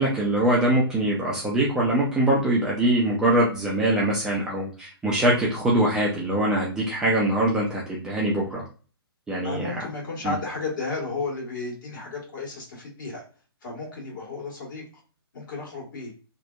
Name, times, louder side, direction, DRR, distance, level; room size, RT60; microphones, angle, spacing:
voice 1, 0.0-8.6 9.3-9.7 10.2-10.3, right 1 dB, 5° right, -5 dB, 0.3 m, -23 dB
voice 2, 9.4-13.2 13.6-14.8 15.3-16.1, left 3 dB, 50° left, -2 dB, 1.3 m, -33 dB
2.6 x 2.1 x 2.2 m, 0.37 s
figure-of-eight pair, 125°, 13 cm